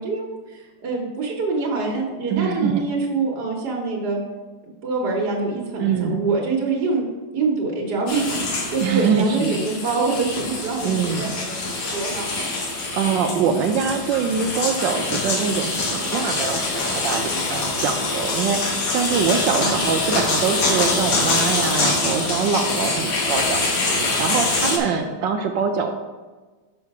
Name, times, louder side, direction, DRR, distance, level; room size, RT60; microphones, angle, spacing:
voice 1, 0.0-4.2 4.8-7.0 7.3-12.5 19.5-19.8, right 3 dB, 55° right, -3 dB, 1.6 m, -25 dB
voice 2, 2.3-2.9 5.8-6.2 8.8-9.5 10.8-11.4 12.5-23.7 24.2-25.9, right 6 dB, 75° right, 5 dB, 1.1 m, -24 dB
sound 1, 8.1-24.8, left 3 dB, 55° left, 1.5 m, -24 dB
6.3 x 5.7 x 4.7 m, 1.3 s
omnidirectional pair, 2.3 m